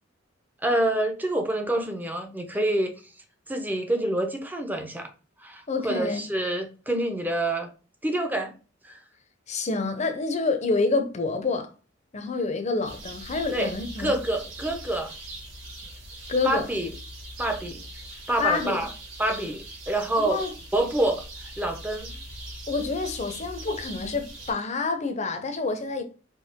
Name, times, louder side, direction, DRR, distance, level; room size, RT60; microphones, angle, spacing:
voice 1, 0.6-2.9 3.5-5.1 5.4-7.7 8.0-8.5 8.8-9.0 13.5-13.7 14.0-15.1 16.4-16.9 17.4-17.8 18.3-18.9 19.2-20.4 20.7-22.2, right 1 dB, 10° right, 0.7 m, -27 dB
voice 2, 5.7-6.2 9.5-11.7 12.1-14.2 16.3-16.7 18.4-18.9 20.2-20.5 22.7-26.0, left 3 dB, 35° left, 0.7 m, -27 dB
sound 1, 12.8-24.5, right 1 dB, 90° right, 2.0 m, -41 dB
4.6 x 3.0 x 3.5 m
head